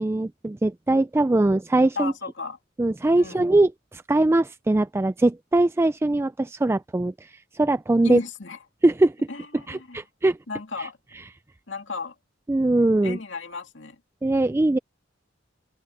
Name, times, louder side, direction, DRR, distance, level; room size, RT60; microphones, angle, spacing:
voice 1, 0.0-2.1 2.8-8.2 8.8-9.2 9.7-10.4 10.8-10.9 12.5-13.2 14.2-14.8, right 2 dB, 15° right, 0.3 m, -21 dB
voice 2, 2.0-2.6 3.2-3.5 8.0-8.6 9.3-10.0 10.5-11.0 11.7-12.1 13.0-14.0, left 3 dB, 70° left, 2.5 m, -34 dB
head